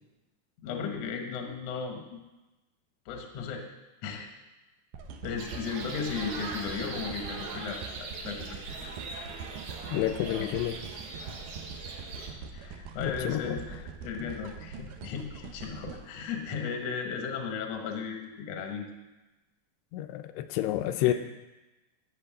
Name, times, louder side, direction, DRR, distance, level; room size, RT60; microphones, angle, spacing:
voice 1, 0.6-2.2 3.0-3.7 4.0-4.3 5.2-8.6 10.4-10.5 12.2-13.6 14.0-18.9 21.0-21.1, left 6 dB, 70° left, 3 dB, 1.6 m, -36 dB
sound 1, 4.9-17.1 17.7-17.8, right 5 dB, 80° right, 1.9 m, -44 dB
sound 2, 5.4-12.3, right 3 dB, 65° right, 2.1 m, -41 dB
voice 2, 9.9-10.8 13.0-13.6 14.2-14.3 19.9-21.1, left 13 dB, 90° left, 9 dB, 2.7 m, -29 dB
12.0 x 4.3 x 7.5 m, 1.1 s
omnidirectional pair, 4.7 m